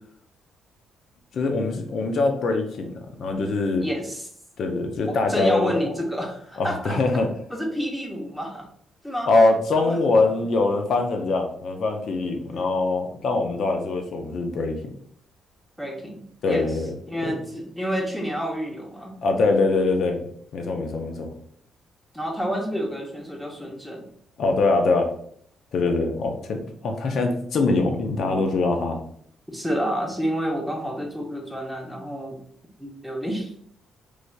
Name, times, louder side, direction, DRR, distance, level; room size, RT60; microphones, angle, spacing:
voice 1, 1.3-3.9 4.6-5.7 6.6-7.3 9.3-14.8 16.4-16.9 17.2-17.4 19.2-20.3 20.5-21.3 24.4-25.1 25.7-29.0, left 3 dB, 65° left, 5 dB, 0.5 m, -23 dB
voice 2, 3.8-4.3 5.0-7.0 7.5-8.7 9.0-9.3 9.8-10.0 12.5-12.7 15.8-16.7 17.1-19.2 22.1-24.1 28.3-28.4 29.5-32.4 32.8-33.6, equal, ahead, 0 dB, 0.7 m, -29 dB
3.2 x 2.5 x 2.2 m, 0.64 s
cardioid pair, 90°, 0 cm